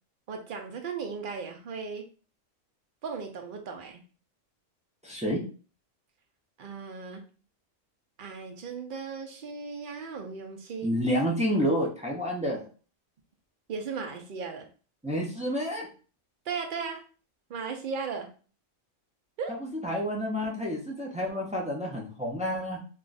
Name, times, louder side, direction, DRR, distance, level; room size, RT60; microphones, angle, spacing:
voice 1, 0.3-2.0 3.0-4.0 6.6-7.2 8.2-10.9 13.7-14.7 16.5-17.0 17.5-18.3 19.4-19.5, right 5 dB, 55° right, 4 dB, 0.6 m, -36 dB
voice 2, 5.0-5.4 10.8-12.7 15.0-15.9 19.6-22.8, equal, 10° right, -2 dB, 0.3 m, -29 dB
2.4 x 2.3 x 3.9 m, 0.38 s
omnidirectional pair, 1.3 m